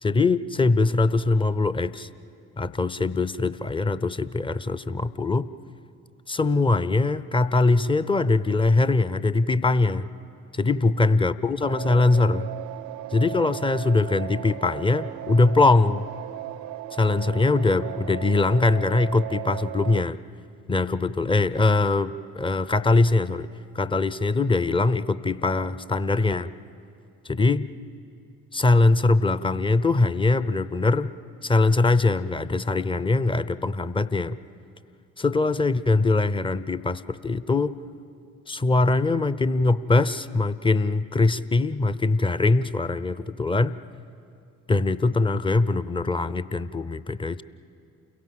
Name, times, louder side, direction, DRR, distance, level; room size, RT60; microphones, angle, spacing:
voice 1, 0.0-2.1 2.6-5.5 6.3-10.1 10.5-12.5 13.1-16.1 16.9-20.2 20.7-23.5 23.7-26.5 27.3-27.7 28.5-31.1 31.4-34.4 35.2-37.7 38.5-43.8 44.7-47.4, left 3 dB, 10° left, 15 dB, 0.5 m, -22 dB
sound 1, 11.6-20.0, right 16 dB, 40° right, 0.5 m, -36 dB
29.0 x 17.0 x 7.5 m, 2.5 s
figure-of-eight pair, 45°, 45 cm